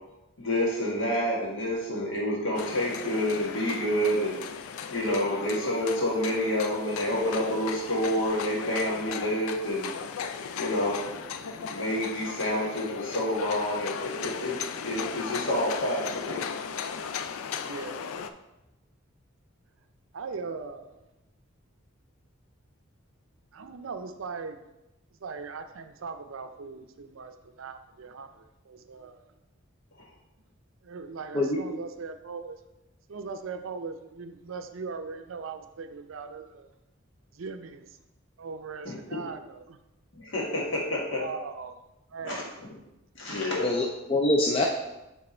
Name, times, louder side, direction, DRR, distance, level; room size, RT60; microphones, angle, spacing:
voice 1, 0.4-4.4 4.9-9.9 10.5-11.1 11.4-14.6 14.8-16.5 38.8-39.2 40.1-41.2 42.2-42.4 43.1-43.7, left 1 dB, 65° left, -3 dB, 1.7 m, -28 dB
sound 1, 2.5-18.3, left 6 dB, 85° left, 0.4 m, -37 dB
voice 2, 17.4-18.2 20.1-21.0 23.5-24.6 25.2-29.2 30.8-32.6 33.1-36.7 37.3-38.0 38.4-39.8 41.2-41.8 42.1-42.6, right 4 dB, 70° right, 8 dB, 0.5 m, -39 dB
voice 3, 43.6-44.7, left 2 dB, 25° left, 0 dB, 0.5 m, -24 dB
6.6 x 3.5 x 4.3 m, 0.96 s
head